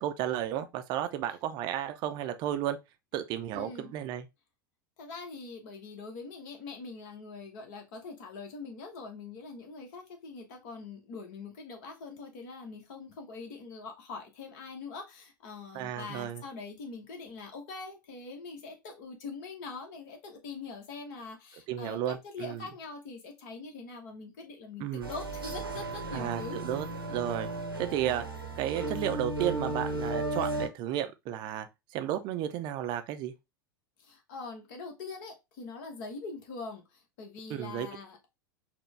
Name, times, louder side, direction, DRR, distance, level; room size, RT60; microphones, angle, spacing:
voice 1, 0.0-2.8 3.1-4.3 15.7-16.4 21.7-22.7 24.8-25.1 26.1-27.5 27.8-28.2 28.6-31.7 31.9-33.3 37.5-37.9, right 11 dB, 40° right, 0.5 m, -33 dB
voice 2, 3.5-3.9 5.0-26.6 34.0-38.2, left 4 dB, 50° left, 1.2 m, -43 dB
sound 1, 25.0-30.7, right 2 dB, 85° right, 0.8 m, -35 dB
4.4 x 2.2 x 3.2 m
figure-of-eight pair, 85°, 12 cm